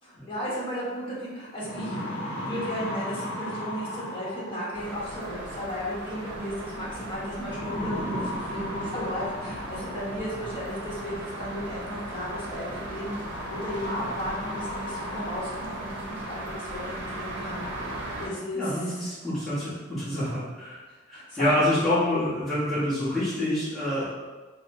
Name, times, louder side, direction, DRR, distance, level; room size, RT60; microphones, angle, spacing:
voice 1, 0.0-19.1 20.9-21.5, equal, 25° left, -7 dB, 1.2 m, -35 dB
sound 1, 0.9-1.0 1.4-4.8 6.2-6.6 7.4-10.2 11.5-11.6 13.1-16.0 16.5-16.6 17.1-17.2 17.5-18.0, left 1 dB, 65° left, 0.8 m, -36 dB
sound 2, 4.7-18.3, right 1 dB, 60° right, 0.7 m, -38 dB
voice 2, 18.5-20.8 21.1-24.1, left 1 dB, ahead, -14 dB, 1.3 m, -27 dB
4.2 x 2.1 x 3.8 m, 1.3 s
head